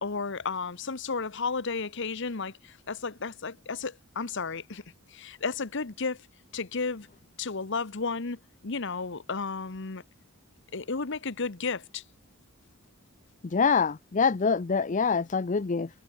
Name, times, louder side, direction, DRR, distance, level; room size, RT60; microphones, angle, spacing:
voice 1, 0.0-4.8 5.1-6.2 6.5-7.1 7.4-10.0 10.7-12.0, left 4 dB, 60° left, 1.1 m, -33 dB
voice 2, 13.5-15.9, left 5 dB, 35° left, 0.5 m, -25 dB
head